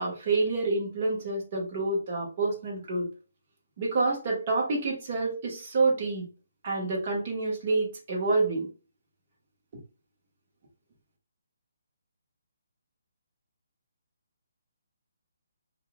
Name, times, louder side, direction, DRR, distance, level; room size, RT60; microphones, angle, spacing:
voice 1, 0.0-3.1 3.8-6.3 6.6-8.7, right 3 dB, 30° right, -2 dB, 1.3 m, -28 dB
5.4 x 2.5 x 2.4 m, 0.37 s
hypercardioid pair, 175°, 0 cm